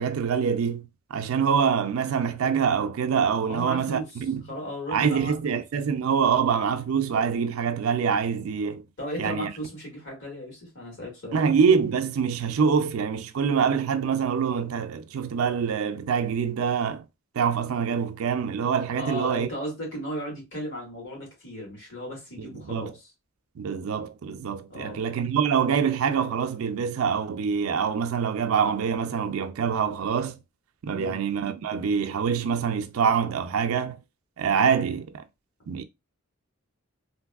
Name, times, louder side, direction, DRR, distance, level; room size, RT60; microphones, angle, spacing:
voice 1, 0.0-4.4 4.9-8.8 9.2-9.5 11.3-17.0 17.4-19.5 22.7-22.9 23.6-30.4 30.8-34.0 34.4-35.2 35.7-35.8, right 6 dB, 80° right, 0.4 m, -25 dB
voice 2, 3.5-4.2 4.5-5.6 9.0-11.5 19.0-23.1 24.7-25.0 30.9-31.2, equal, 60° left, 1.9 m, -36 dB
3.2 x 2.6 x 2.3 m
head